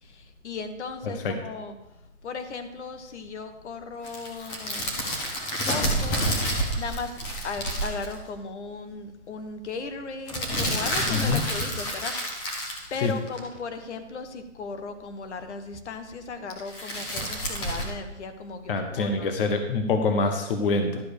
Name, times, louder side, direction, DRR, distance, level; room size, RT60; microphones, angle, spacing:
voice 1, 0.0-1.7 2.2-4.9 5.6-6.2 6.7-7.1 7.4-12.1 12.4-19.3, left 4 dB, 70° left, 9 dB, 1.2 m, -36 dB
sound 1, 4.0-8.1 10.3-13.5 16.5-17.9, equal, 10° left, 0.9 m, -29 dB
voice 2, 11.1-11.4 13.0-13.1 18.7-21.1, left 3 dB, 50° left, 6 dB, 1.0 m, -25 dB
12.0 x 5.0 x 6.4 m, 0.97 s
hypercardioid pair, 170°, 36 cm